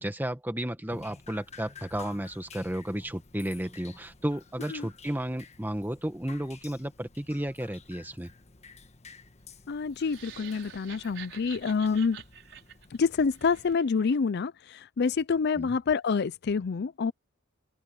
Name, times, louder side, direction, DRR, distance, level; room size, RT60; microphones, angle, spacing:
voice 1, 0.0-8.3 15.5-15.8, right 1 dB, 10° right, 1.6 m, -33 dB
Drip, 0.9-13.7, left 5 dB, 35° left, 1.4 m, -52 dB
voice 2, 9.7-12.2 12.9-17.1, left 5 dB, 55° left, 0.4 m, -27 dB
sound 1, 9.9-14.2, right 9 dB, 65° right, 6.0 m, -48 dB
open air
head